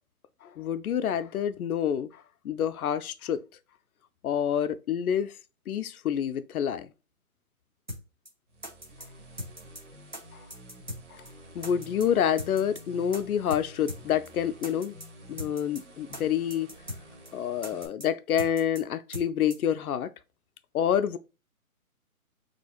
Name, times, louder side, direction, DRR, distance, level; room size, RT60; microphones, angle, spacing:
voice 1, 0.4-2.1 2.4-3.4 4.2-5.3 5.7-6.9 11.5-15.0 15.3-16.7 17.3-20.1 20.7-21.2, left 9 dB, 80° left, 0.5 m, -27 dB
sound 1, 7.9-8.0 8.3-8.4 8.6-9.1 9.4-9.8 10.1-10.2 10.5-11.0 11.3-11.4 11.6-12.1 12.4-12.8 13.1-13.2 13.5-13.6 13.9-14.0 14.3-14.4 14.6-15.1 15.4-15.8 16.1-16.2 16.5-17.0 17.3-17.4 17.6-18.1 18.4-18.8 19.1-19.3 19.5-19.6, left 1 dB, 35° right, 0.4 m, -39 dB
sound 2, 8.5-17.9, equal, 55° right, 1.2 m, -50 dB
4.2 x 2.9 x 2.4 m
hypercardioid pair, 175°, 43 cm